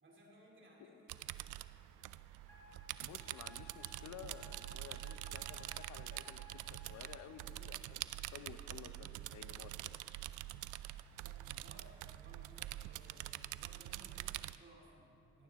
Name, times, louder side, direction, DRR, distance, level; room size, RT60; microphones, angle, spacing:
voice 1, 0.0-1.5 11.2-15.4, right 1 dB, 40° right, -2 dB, 3.0 m, -61 dB
sound 1, 1.1-14.6, right 15 dB, 85° right, 0.5 m, -46 dB
Wind instrument woodwind instrument, 2.5-7.2, equal, 10° left, 3.8 m, -59 dB
voice 2, 3.0-10.0, left 8 dB, 70° left, 11 dB, 0.9 m, -54 dB
18.0 x 15.0 x 3.7 m, 2.7 s
cardioid pair, 90°, 30 cm